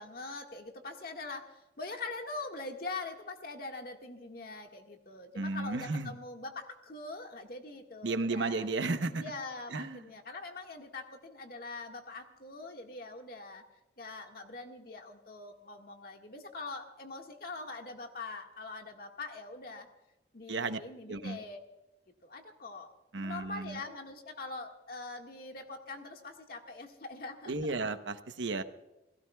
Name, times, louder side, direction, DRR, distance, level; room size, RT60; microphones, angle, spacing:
voice 1, 0.0-8.7 9.1-13.6 14.0-19.9 20.3-21.6 22.2-27.9, left 3 dB, 55° left, 3 dB, 1.7 m, -43 dB
voice 2, 5.4-6.1 8.0-9.2 9.7-10.0 20.5-20.8 21.1-21.4 23.1-23.8 27.5-28.6, right 3 dB, 90° right, 10 dB, 0.9 m, -33 dB
29.0 x 17.0 x 2.3 m, 0.98 s
head